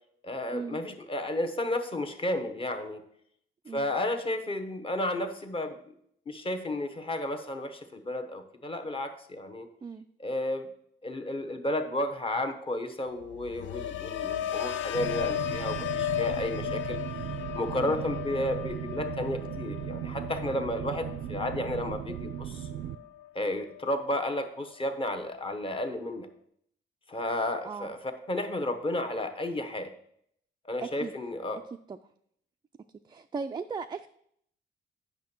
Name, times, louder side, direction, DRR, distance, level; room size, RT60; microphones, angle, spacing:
voice 1, 0.2-3.0 3.7-5.9 6.3-9.7 10.2-10.7 11.0-17.0 17.5-22.7 23.3-26.3 27.1-29.9 30.6-31.6, left 1 dB, 25° left, 6 dB, 1.1 m, -32 dB
sound 1, 13.2-23.3 23.6-24.1, left 11 dB, 70° left, 0.5 m, -36 dB
sound 2, 14.9-22.9, right 11 dB, 80° right, 0.5 m, -37 dB
voice 2, 30.8-31.1 31.9-32.0 33.0-34.1, right 5 dB, 20° right, 6 dB, 0.3 m, -37 dB
8.3 x 6.0 x 4.4 m, 0.70 s
cardioid pair, 90°, 20 cm